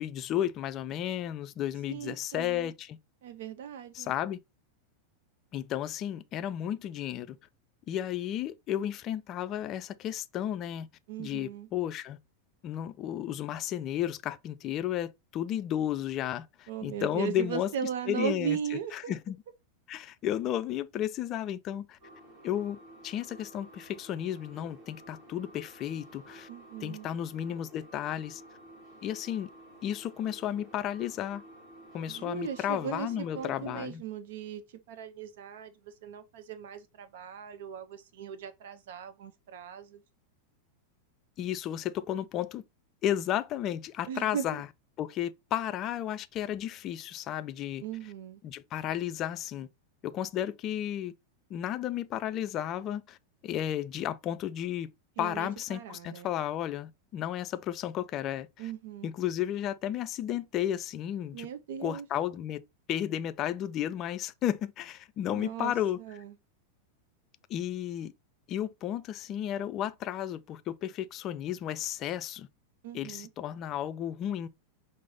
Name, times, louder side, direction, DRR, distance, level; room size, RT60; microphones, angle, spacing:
voice 1, 0.0-3.0 3.9-4.4 5.5-7.4 7.9-10.9 11.2-12.2 12.6-17.7 18.1-19.4 19.9-22.0 22.4-22.8 23.0-26.5 26.8-28.4 29.0-29.5 29.8-31.4 31.9-34.0 41.4-42.6 43.0-44.7 45.0-47.8 48.4-49.7 50.0-51.1 51.5-53.2 53.4-54.9 55.2-58.7 59.0-61.5 61.8-62.6 62.9-66.0 67.5-68.1 68.5-72.5 72.9-74.5, left 11 dB, 35° left, 0.3 m, -33 dB
voice 2, 1.9-2.7 3.2-4.1 11.1-11.7 16.7-19.1 26.5-27.1 32.1-33.1 33.3-34.6 34.9-40.0 44.1-44.5 47.8-48.4 55.2-56.3 58.6-59.1 61.3-62.1 65.3-65.7 66.0-66.3 72.8-73.3, right 8 dB, 55° right, 0.6 m, -38 dB
sound 1, 22.0-33.9, right 1 dB, 25° right, 2.1 m, -52 dB
4.6 x 2.0 x 3.8 m
figure-of-eight pair, 90°, 0 cm